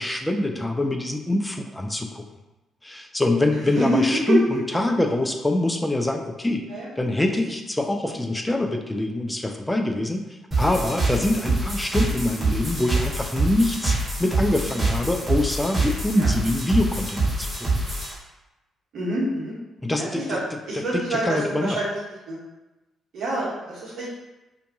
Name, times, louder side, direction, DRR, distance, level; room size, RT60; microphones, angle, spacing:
voice 1, 0.0-2.3 2.8-6.7 7.0-10.3 10.6-17.7 19.8-20.4 20.9-21.8, left 1 dB, 10° left, 4 dB, 0.3 m, -24 dB
voice 2, 3.7-4.4 6.7-6.9 8.0-8.1 16.1-16.3 18.9-19.5 20.0-20.4 20.7-21.9 22.3-22.4 23.1-24.1, right 1 dB, 55° right, -7 dB, 0.9 m, -26 dB
sound 1, 10.5-18.1, right 2 dB, 25° right, 1.0 m, -25 dB
2.5 x 2.2 x 2.6 m, 1.0 s
figure-of-eight pair, 40°, 0 cm